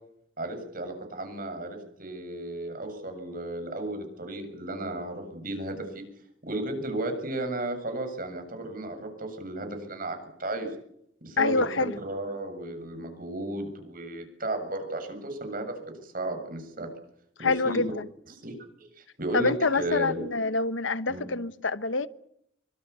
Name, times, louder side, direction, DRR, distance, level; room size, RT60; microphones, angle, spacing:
voice 1, 0.4-6.0 6.4-10.7 11.2-16.9 17.4-17.8 18.3-18.6 19.0-20.2 21.1-21.3, right 1 dB, 50° right, 7.2 m, -34 dB
voice 2, 11.4-11.9 17.4-18.0 19.3-22.1, left 3 dB, 90° left, 1.2 m, -26 dB
24.5 x 24.5 x 7.0 m
head